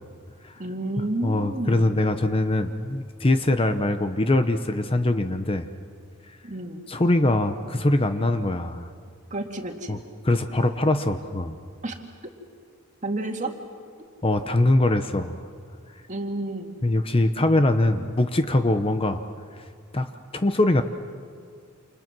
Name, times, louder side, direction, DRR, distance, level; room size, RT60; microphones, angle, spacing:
voice 1, 0.6-2.1 6.4-6.9 9.3-10.0 11.8-12.0 13.0-13.5 16.1-16.8, right 2 dB, 35° right, 3 dB, 2.1 m, -30 dB
voice 2, 1.2-5.7 6.9-8.9 9.9-10.0 10.2-11.6 14.2-15.3 16.8-19.2 19.9-20.8, left 1 dB, 25° left, 8 dB, 0.9 m, -22 dB
29.0 x 28.0 x 6.1 m, 2.2 s
head